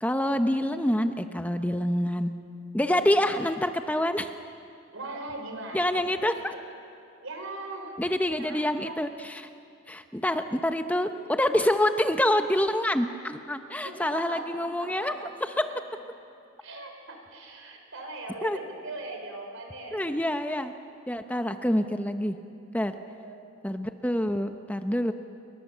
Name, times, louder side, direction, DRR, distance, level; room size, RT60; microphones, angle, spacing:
voice 1, 0.0-2.3 2.7-4.3 5.7-6.3 8.0-9.5 9.9-15.7 18.4-18.6 19.9-20.7 21.1-22.4 22.7-22.9 23.6-25.1, left 1 dB, 5° left, 7 dB, 0.7 m, -26 dB
voice 2, 4.9-6.6 7.2-8.0 8.3-9.0 13.7-15.3 16.6-20.2 23.2-23.4, right 2 dB, 85° right, 3 dB, 5.1 m, -40 dB
28.0 x 23.5 x 7.4 m, 2.5 s
head